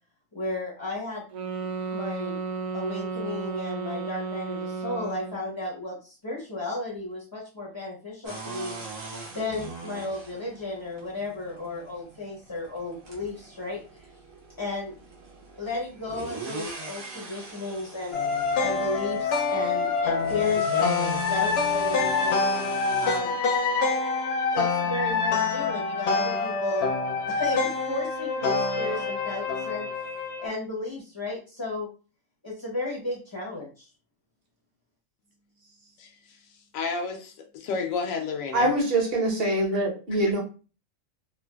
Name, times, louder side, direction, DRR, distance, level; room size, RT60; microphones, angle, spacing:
voice 1, 0.3-1.2 1.9-2.4 2.7-8.8 9.3-14.1 14.6-14.9 15.6-18.2 18.6-22.4 23.0-23.3 24.5-26.9 27.3-30.1 30.4-31.9 32.4-33.9, left 2 dB, 30° left, 0.4 m, -34 dB
sound 1, 1.3-5.5, right 5 dB, 70° right, 0.4 m, -33 dB
sound 2, 8.2-23.2, right 4 dB, 85° right, 1.3 m, -40 dB
sound 3, 18.1-30.5, left 4 dB, 65° left, 0.8 m, -26 dB
voice 2, 36.0-36.4 36.7-38.7 40.2-40.3, left 4 dB, 90° left, 1.0 m, -31 dB
voice 3, 38.5-40.4, right 1 dB, 50° right, 1.2 m, -24 dB
3.1 x 2.2 x 2.2 m
omnidirectional pair, 1.3 m